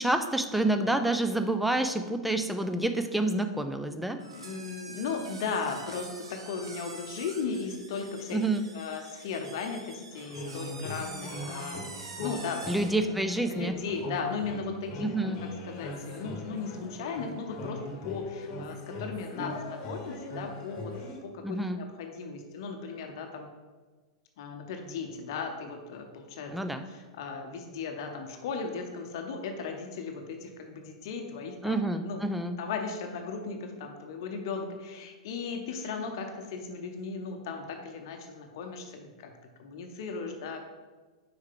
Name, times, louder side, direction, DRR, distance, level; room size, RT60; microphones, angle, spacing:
voice 1, 0.0-4.2 8.3-8.7 12.7-13.7 15.0-15.4 21.4-21.8 26.5-26.8 31.6-32.5, right 2 dB, 5° right, 7 dB, 0.4 m, -28 dB
sound 1, 4.2-13.0, right 3 dB, 75° right, 0.8 m, -46 dB
voice 2, 4.3-8.4 8.7-12.8 13.1-13.2 13.5-20.9 21.2-23.5 24.4-26.6 26.9-31.8 32.1-32.2 32.6-40.7, left 5 dB, 55° left, 4 dB, 0.7 m, -37 dB
sound 2, 10.1-21.2, left 2 dB, 40° left, 1.1 m, -40 dB
6.3 x 4.7 x 3.7 m, 1.3 s
figure-of-eight pair, 95°, 3 cm